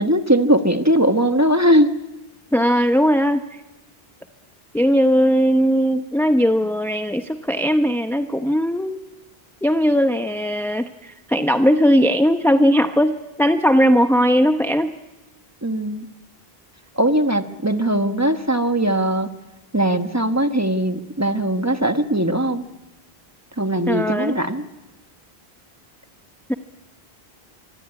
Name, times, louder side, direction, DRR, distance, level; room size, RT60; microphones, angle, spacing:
voice 1, 0.0-2.0 15.6-16.1 17.0-19.3 19.7-22.6 23.6-24.6, right 1 dB, 15° right, 8 dB, 1.2 m, -19 dB
voice 2, 2.5-3.6 4.7-9.0 9.6-14.9 23.9-24.3 26.5-26.6, equal, 5° left, 7 dB, 0.7 m, -18 dB
24.5 x 24.0 x 9.8 m, 1.0 s
omnidirectional pair, 1.0 m